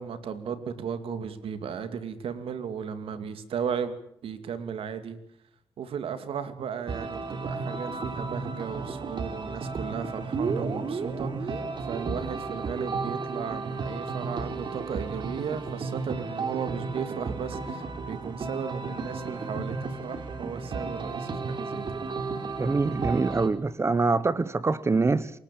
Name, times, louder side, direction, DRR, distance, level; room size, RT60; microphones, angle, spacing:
voice 1, 0.0-3.9 4.2-5.2 5.8-22.0, right 7 dB, 80° right, 2.6 m, -35 dB
sound 1, 6.9-23.5, right 4 dB, 55° right, 3.6 m, -33 dB
voice 2, 22.6-25.3, right 3 dB, 30° right, 1.0 m, -24 dB
28.0 x 18.0 x 8.6 m
cardioid pair, 100°, 9 cm